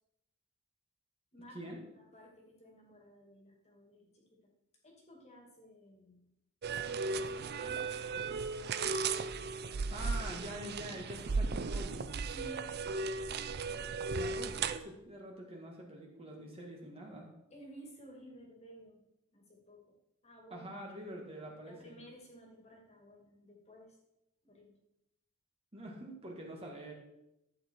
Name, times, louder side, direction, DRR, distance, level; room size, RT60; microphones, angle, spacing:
voice 1, 1.3-4.5 4.8-6.3 6.7-8.0 8.5-9.1 9.7-10.0 12.3-13.1 17.5-19.0 19.3-20.0 20.2-20.7 21.7-24.0 24.4-24.8, equal, 30° left, 0 dB, 2.3 m, -55 dB
sound 1, 6.6-14.8, right 4 dB, 45° right, 0.5 m, -36 dB
voice 2, 9.9-12.1 14.1-17.3 20.5-22.0 25.7-26.9, equal, 25° right, 0 dB, 1.8 m, -45 dB
12.0 x 8.1 x 4.6 m, 0.87 s
head